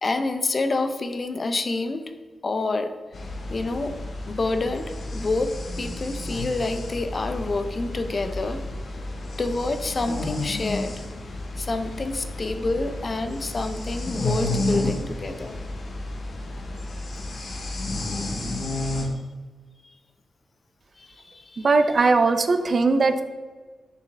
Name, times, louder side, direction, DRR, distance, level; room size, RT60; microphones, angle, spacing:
voice 1, 0.0-2.1 2.4-2.9 3.5-3.9 4.3-5.5 5.8-8.6 9.4-10.9 11.6-15.6 21.0-21.7, left 3 dB, 45° left, 8 dB, 0.6 m, -28 dB
sound 1, 3.1-19.1, left 2 dB, 65° left, 1.3 m, -31 dB
voice 2, 21.6-23.2, right 3 dB, 55° right, 9 dB, 0.5 m, -19 dB
6.9 x 4.6 x 3.4 m, 1.4 s
cardioid pair, 55°, 0 cm